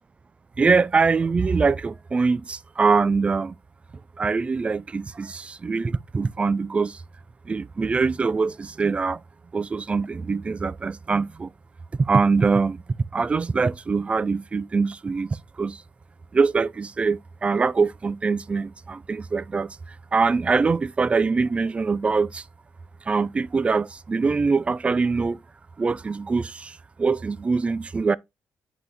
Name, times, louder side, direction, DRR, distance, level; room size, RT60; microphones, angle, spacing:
voice 1, 0.6-3.5 4.2-7.0 7.5-9.2 9.5-11.5 11.9-12.8 13.1-15.8 16.3-22.4 23.1-25.4 25.8-28.2, right 4 dB, 25° right, 0.3 m, -23 dB
8.1 x 3.9 x 3.2 m
cardioid pair, 120°, 5 cm